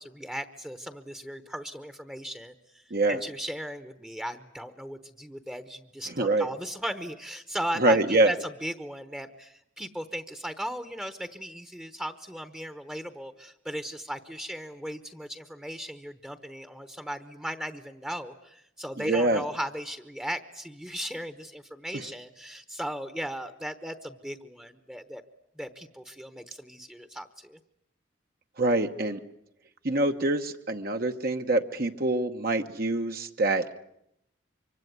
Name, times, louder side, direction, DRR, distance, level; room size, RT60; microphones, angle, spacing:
voice 1, 0.0-25.2 25.6-27.6, equal, 5° right, 10 dB, 1.0 m, -37 dB
voice 2, 6.2-6.5 7.8-8.3 19.0-19.4 28.6-29.2 29.8-33.6, right 2 dB, 50° right, 5 dB, 1.0 m, -25 dB
25.0 x 24.5 x 9.4 m, 0.79 s
head